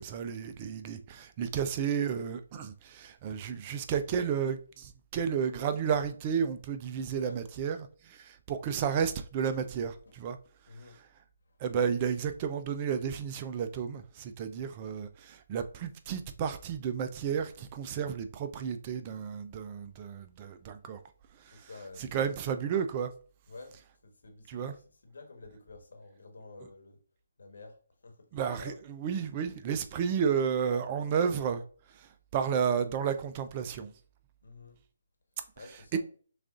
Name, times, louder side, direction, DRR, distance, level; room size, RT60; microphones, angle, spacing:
voice 1, 0.0-10.4 10.9-11.1 11.6-21.0 21.4-21.7 22.0-23.1 24.5-24.8 28.3-31.6 31.9-33.9 35.9-36.0, right 7 dB, 30° right, 0.4 m, -32 dB
voice 2, 10.7-11.0 21.5-22.3 23.5-23.8 24.0-27.0 27.4-27.8 28.0-28.8 30.9-31.1 34.4-34.8 35.6-36.0, left 3 dB, 70° left, 1.2 m, -49 dB
6.3 x 2.4 x 2.4 m
figure-of-eight pair, 145°, 0 cm